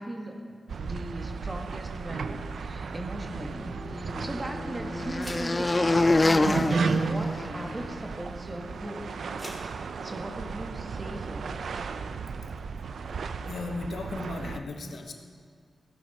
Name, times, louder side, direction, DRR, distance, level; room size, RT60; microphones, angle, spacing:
voice 1, 0.0-9.7 9.9-11.6, right 1 dB, 25° right, 2 dB, 1.5 m, -39 dB
sound 1, 0.7-14.6, right 5 dB, 80° right, 0.5 m, -34 dB
sound 2, 3.4-8.0, left 2 dB, 25° left, 0.4 m, -27 dB
sound 3, 4.3-10.7, left 1 dB, 5° left, 2.0 m, -51 dB
voice 2, 13.5-15.1, left 2 dB, 80° left, 4 dB, 1.2 m, -35 dB
16.5 x 11.0 x 4.2 m, 2.1 s
wide cardioid pair, 140°, 0 cm